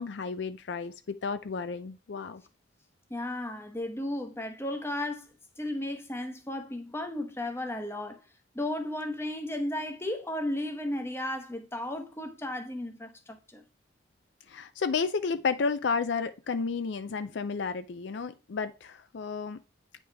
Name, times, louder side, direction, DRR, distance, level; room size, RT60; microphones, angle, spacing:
voice 1, 0.0-2.4 14.5-19.6, left 5 dB, 65° left, 0.4 m, -32 dB
voice 2, 3.1-5.2 5.6-8.2 8.5-13.6, left 1 dB, 15° left, 0.9 m, -34 dB
8.7 x 5.2 x 3.4 m
head